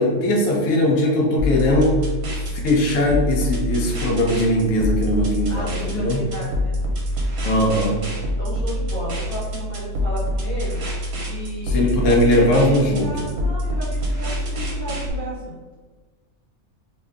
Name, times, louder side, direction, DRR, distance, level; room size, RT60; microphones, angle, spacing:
voice 1, 0.0-2.0 2.5-6.2 7.4-8.0 11.7-13.3, left 1 dB, 70° left, -1 dB, 0.9 m, -19 dB
sound 1, 1.4-15.1, left 1 dB, 75° right, 1.1 m, -26 dB
voice 2, 5.5-6.8 8.3-10.9 11.2-15.6, right 1 dB, 25° left, -7 dB, 1.1 m, -33 dB
2.6 x 2.2 x 3.5 m, 1.3 s
omnidirectional pair, 1.5 m